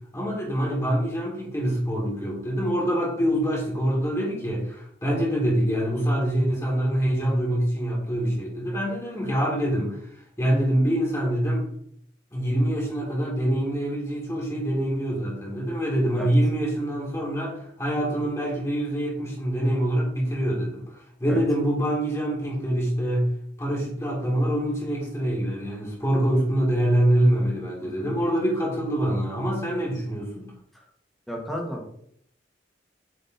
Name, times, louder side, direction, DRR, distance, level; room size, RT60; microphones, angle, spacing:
voice 1, 0.1-10.0 10.4-11.7 12.3-20.8 21.2-23.3 23.6-30.5, right 1 dB, 15° left, -3 dB, 2.0 m, -25 dB
voice 2, 31.3-31.9, equal, ahead, -1 dB, 1.4 m, -32 dB
8.0 x 3.8 x 4.0 m, 0.68 s
head